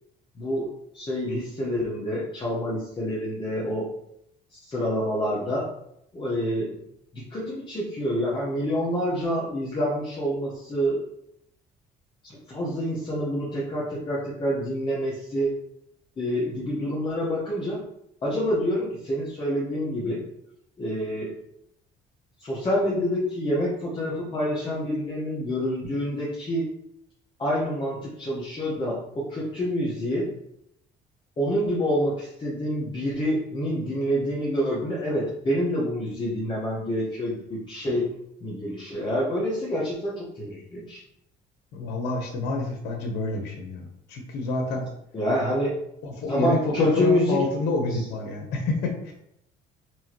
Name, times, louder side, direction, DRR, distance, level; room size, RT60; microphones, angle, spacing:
voice 1, 0.4-0.7 0.9-3.9 4.6-5.7 6.1-6.7 7.1-11.0 12.2-15.6 16.2-17.8 18.2-20.2 20.8-21.3 22.4-26.7 27.4-30.3 31.4-38.1 38.4-41.0 45.1-45.8 46.3-47.4 47.9-48.1, equal, 30° left, -6 dB, 1.1 m, -27 dB
voice 2, 41.7-44.9 46.0-49.1, left 2 dB, 85° left, 2 dB, 0.9 m, -28 dB
4.6 x 2.9 x 2.9 m, 0.76 s
cardioid pair, 110°, 17 cm